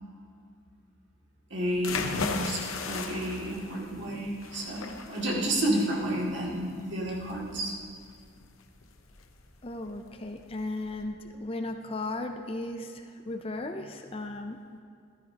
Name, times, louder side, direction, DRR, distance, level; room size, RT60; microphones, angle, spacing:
voice 1, 1.5-7.7, right 1 dB, 60° right, -4 dB, 2.4 m, -31 dB
sound 1, 1.7-11.0, left 4 dB, 80° left, 0.8 m, -38 dB
voice 2, 9.6-14.8, left 2 dB, 25° left, 6 dB, 0.5 m, -36 dB
14.0 x 13.5 x 2.9 m, 2.2 s
head